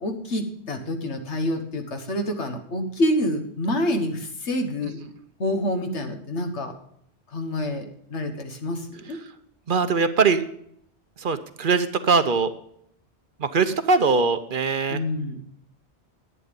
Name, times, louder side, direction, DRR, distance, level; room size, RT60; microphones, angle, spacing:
voice 1, 0.0-5.0 5.4-6.7 7.3-9.2 14.9-15.4, left 1 dB, 90° left, 5 dB, 1.7 m, -27 dB
voice 2, 9.7-10.4 11.2-12.5 13.4-15.0, right 4 dB, 55° right, 10 dB, 0.9 m, -21 dB
11.0 x 8.8 x 5.2 m, 0.69 s
omnidirectional pair, 1.1 m